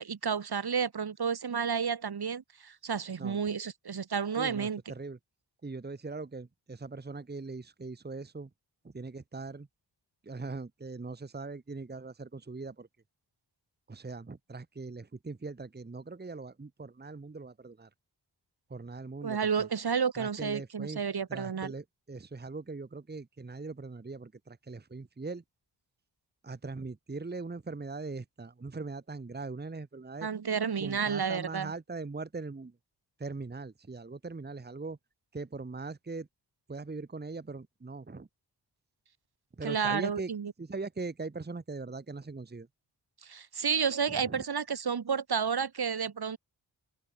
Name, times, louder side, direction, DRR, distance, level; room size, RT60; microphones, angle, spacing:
voice 1, 0.0-4.8 19.2-21.7 30.2-31.7 39.6-40.5 43.2-46.4, right 6 dB, 60° right, 2.0 m, -31 dB
voice 2, 4.4-5.2 5.6-8.5 8.8-9.7 10.2-12.9 13.9-17.9 18.7-19.7 20.2-21.0 21.3-25.4 26.4-30.3 30.8-32.7 33.2-35.0 35.3-36.3 36.7-38.3 39.6-40.3 40.6-42.7 44.1-44.4, right 3 dB, 20° right, 1.3 m, -40 dB
wide cardioid pair, 75°, 43 cm